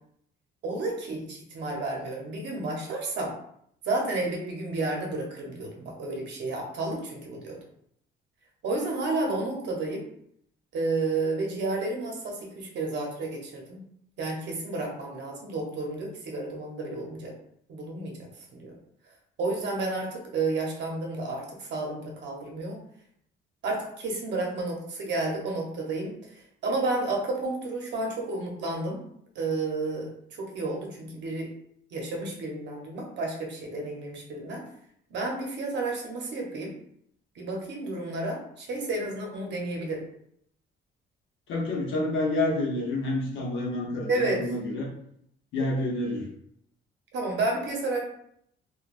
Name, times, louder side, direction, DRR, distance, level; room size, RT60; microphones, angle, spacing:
voice 1, 0.6-3.3 3.8-7.6 8.6-10.0 10.7-13.8 14.2-17.3 17.7-18.1 18.5-18.7 19.4-22.8 23.6-26.1 26.6-29.0 29.3-30.1 30.4-31.5 31.9-34.6 35.1-36.7 37.4-40.0 44.1-44.5 47.1-48.0, right 2 dB, 60° right, 0 dB, 0.8 m, -31 dB
voice 2, 41.5-44.9 45.5-46.3, left 2 dB, 70° left, -3 dB, 0.8 m, -28 dB
3.2 x 2.3 x 2.5 m, 0.69 s
cardioid pair, 175°, 20 cm